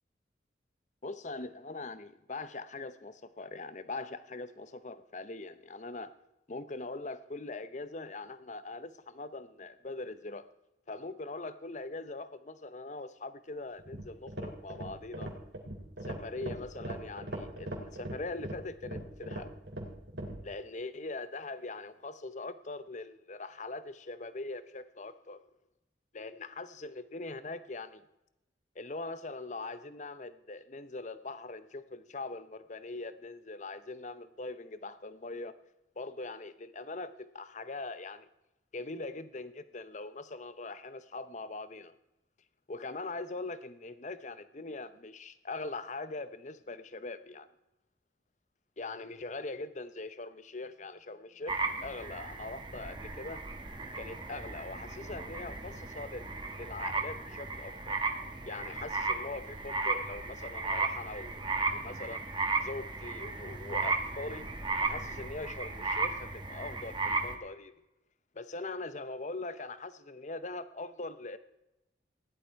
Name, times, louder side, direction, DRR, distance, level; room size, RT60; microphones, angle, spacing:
voice 1, 1.0-6.1 6.5-10.5 10.9-15.3 16.0-19.5 20.4-25.4 26.1-28.1 28.7-35.5 36.0-38.3 38.7-41.9 42.7-47.5 48.8-53.4 53.9-58.0 58.5-62.3 62.6-64.5 64.8-67.8 68.3-71.4, left 3 dB, 40° left, 0.8 m, -42 dB
sound 1, 13.8-20.4, right 1 dB, 70° right, 3.1 m, -40 dB
sound 2, 51.5-67.4, right 3 dB, 25° right, 1.6 m, -35 dB
16.0 x 11.5 x 4.6 m
head